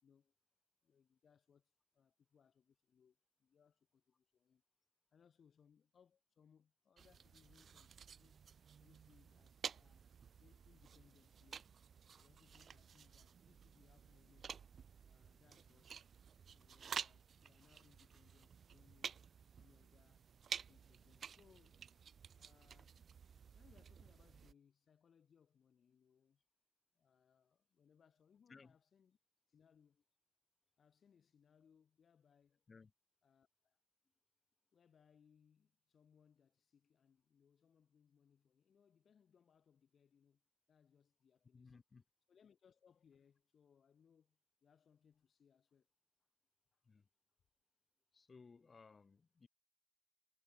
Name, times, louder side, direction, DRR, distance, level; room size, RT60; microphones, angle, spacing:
voice 1, 0.0-0.3 0.8-4.6 5.1-8.4 8.8-10.1 10.4-11.7 12.2-14.5 15.1-15.9 16.5-19.2 19.6-20.3 20.7-21.8 22.3-23.0 23.5-26.4 26.9-29.2 29.5-30.0 30.8-32.6 33.2-33.8 34.7-40.4 40.7-41.7 42.3-45.9 46.7-46.9, left 7 dB, 55° left, 1.9 m, -72 dB
sound 1, 7.0-24.5, right 7 dB, 50° right, 0.5 m, -52 dB
voice 2, 41.5-42.0 46.8-47.1 48.1-49.5, left 4 dB, 35° left, 0.8 m, -61 dB
cardioid pair, 85°, 0 cm